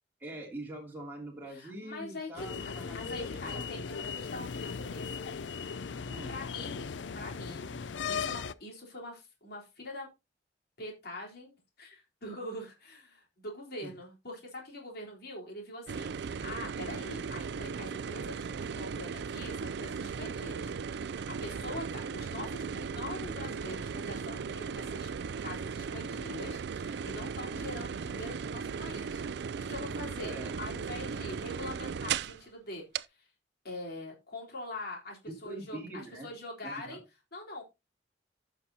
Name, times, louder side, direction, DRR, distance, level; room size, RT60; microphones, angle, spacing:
voice 1, 0.2-3.7 6.1-6.4 13.8-13.9 30.2-30.6 35.3-36.3 36.6-37.0, right 1 dB, 10° right, 2.8 m, -44 dB
voice 2, 1.5-5.2 6.3-10.1 10.8-20.7 21.3-25.1 25.4-29.2 29.6-33.3 33.6-37.0 37.3-37.6, left 1 dB, 60° left, 3.7 m, -44 dB
sound 1, 2.4-8.5, left 6 dB, 80° left, 0.5 m, -38 dB
sound 2, 15.9-32.4 32.9-33.0, right 6 dB, 70° right, 0.4 m, -37 dB
15.5 x 6.0 x 2.8 m
head